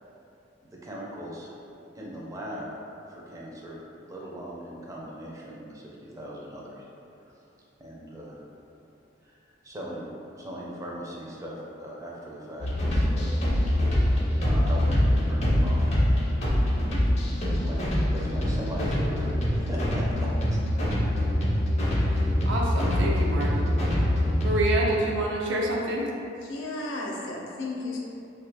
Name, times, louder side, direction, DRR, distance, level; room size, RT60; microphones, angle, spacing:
voice 1, 0.6-1.6 1.9-2.7 3.1-6.9 7.8-8.4 9.2-10.1 10.4-13.2 13.7-14.0 14.3-16.4 17.4-20.6, equal, 20° right, -4 dB, 0.4 m, -39 dB
sound 1, 12.6-24.7, left 1 dB, 35° left, 0.5 m, -24 dB
voice 2, 22.5-23.7 24.4-26.1, right 1 dB, 70° right, -2 dB, 0.5 m, -27 dB
voice 3, 26.4-28.0, left 2 dB, 85° left, -2 dB, 0.5 m, -34 dB
2.7 x 2.4 x 3.3 m, 2.7 s
head